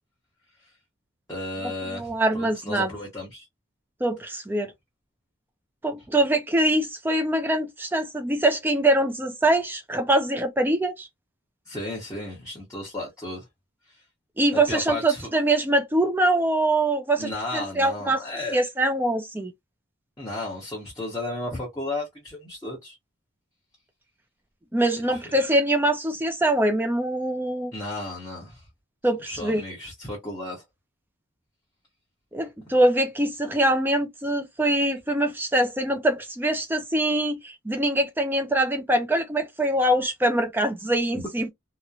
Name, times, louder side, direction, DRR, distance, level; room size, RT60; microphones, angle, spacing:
voice 1, 1.3-3.5 11.7-13.4 14.5-15.3 17.2-18.6 20.2-23.0 25.1-25.2 27.7-28.6 29.2-30.6 41.1-41.2, left 2 dB, 15° left, 1.0 m, -34 dB
voice 2, 1.9-2.9 4.0-4.7 5.8-11.1 14.4-18.2 18.5-19.5 24.7-27.7 29.0-29.6 32.3-41.5, right 1 dB, 10° right, 0.4 m, -23 dB
2.9 x 2.1 x 2.4 m
head